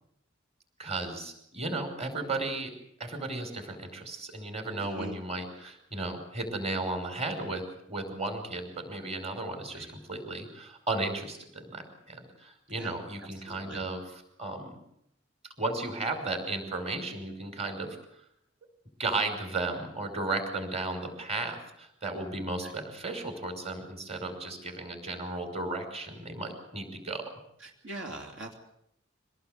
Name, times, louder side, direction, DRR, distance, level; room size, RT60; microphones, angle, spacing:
voice 1, 0.8-2.7 3.0-14.8 15.6-18.0 19.0-27.3, right 2 dB, 35° right, 5 dB, 5.6 m, -34 dB
voice 2, 4.8-5.2 9.7-9.9 12.7-13.0 13.5-13.8 22.6-22.7 27.6-28.5, right 1 dB, 70° right, 2 dB, 3.1 m, -41 dB
25.5 x 19.0 x 8.2 m, 0.76 s
head